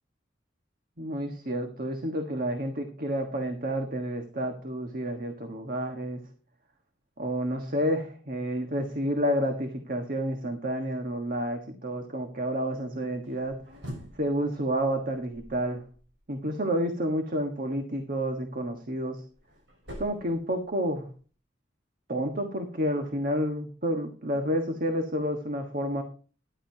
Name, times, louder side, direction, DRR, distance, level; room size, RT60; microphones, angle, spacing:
voice 1, 1.0-6.2 7.2-13.6 14.2-15.8 16.3-19.2 20.0-21.1 22.1-26.0, equal, 50° right, 5 dB, 1.4 m, -30 dB
sound 1, 13.2-16.4 18.6-21.2, equal, 75° right, 7.6 m, -46 dB
13.5 x 11.5 x 2.8 m, 0.38 s
head